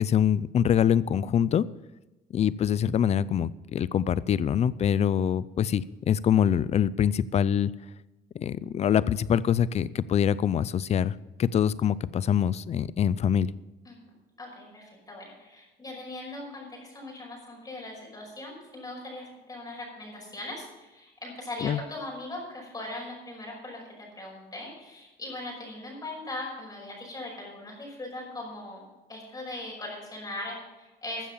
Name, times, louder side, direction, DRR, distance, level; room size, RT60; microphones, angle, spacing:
voice 1, 0.0-1.6 2.3-7.7 8.3-13.5 21.6-21.8, left 9 dB, 40° left, 19 dB, 0.4 m, -24 dB
voice 2, 14.4-28.8 29.1-31.3, left 2 dB, 25° left, -2 dB, 5.6 m, -40 dB
13.5 x 7.4 x 7.1 m, 1.1 s
cardioid pair, 110°, 17 cm